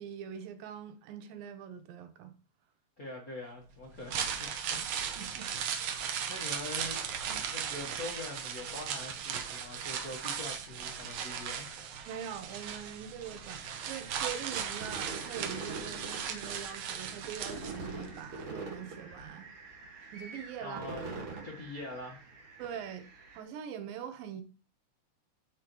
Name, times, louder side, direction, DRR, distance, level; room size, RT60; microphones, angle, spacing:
voice 1, 0.0-2.3 5.2-5.5 5.8-6.0 7.3-7.5 12.1-19.5 20.1-20.8 21.4-21.5 22.6-23.1 23.3-24.4, right 8 dB, 90° right, 2.7 m, -43 dB
voice 2, 3.0-4.9 6.3-7.0 7.5-11.7 20.6-21.0 21.4-22.3, left 2 dB, 75° left, 0.8 m, -43 dB
sound 1, 3.9-18.1 18.4-18.5, right 8 dB, 70° right, 1.5 m, -37 dB
sound 2, 13.6-23.4, right 3 dB, 45° right, 2.2 m, -44 dB
13.5 x 5.1 x 3.1 m
omnidirectional pair, 3.9 m